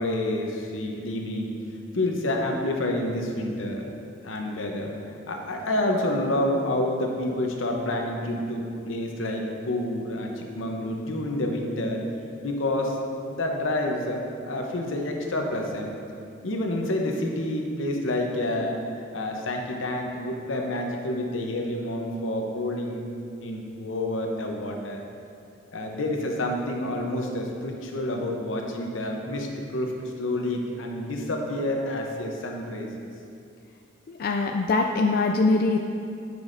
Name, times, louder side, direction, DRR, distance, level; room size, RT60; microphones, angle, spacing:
voice 1, 0.0-1.6 1.9-3.8 4.2-4.9 5.3-12.0 12.4-13.0 13.3-16.0 16.4-18.7 19.1-23.0 23.4-25.0 25.7-33.1, left 1 dB, 85° left, 1 dB, 0.8 m, -28 dB
voice 2, 34.1-35.8, left 3 dB, 50° left, 3 dB, 0.3 m, -23 dB
9.4 x 6.1 x 2.6 m, 2.5 s
head